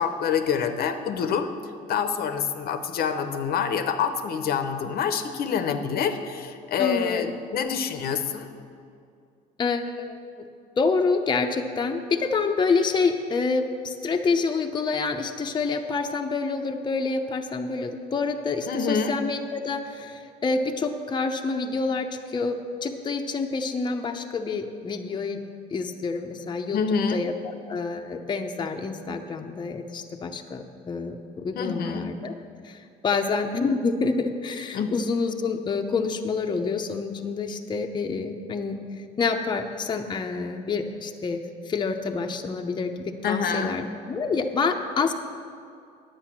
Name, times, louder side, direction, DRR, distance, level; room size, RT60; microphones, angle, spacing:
voice 1, 0.0-1.5 1.9-8.5 18.7-19.2 26.7-27.3 31.5-32.2 34.7-35.0 43.2-43.8, left 6 dB, 65° left, 8 dB, 0.8 m, -27 dB
voice 2, 6.8-7.3 9.6-10.2 10.8-25.4 25.7-26.8 27.1-32.3 32.6-38.8 39.2-45.1, left 4 dB, 25° left, 4 dB, 0.7 m, -27 dB
10.0 x 8.1 x 6.0 m, 2.4 s
cardioid pair, 110°, 17 cm